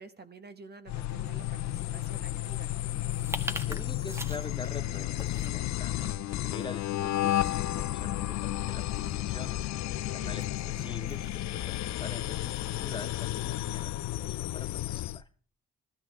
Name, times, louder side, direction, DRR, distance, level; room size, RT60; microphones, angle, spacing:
voice 1, 0.0-2.7 10.2-10.4, right 4 dB, 35° right, 9 dB, 1.2 m, -49 dB
sound 1, 0.9-15.2, left 14 dB, 65° left, 0.5 m, -32 dB
sound 2, 3.0-15.1, equal, 10° right, 1.2 m, -47 dB
voice 2, 3.7-6.0 6.4-9.7 10.1-15.3, left 3 dB, 15° left, 9 dB, 1.0 m, -45 dB
15.0 x 12.5 x 3.6 m, 0.42 s
cardioid pair, 90°, 30 cm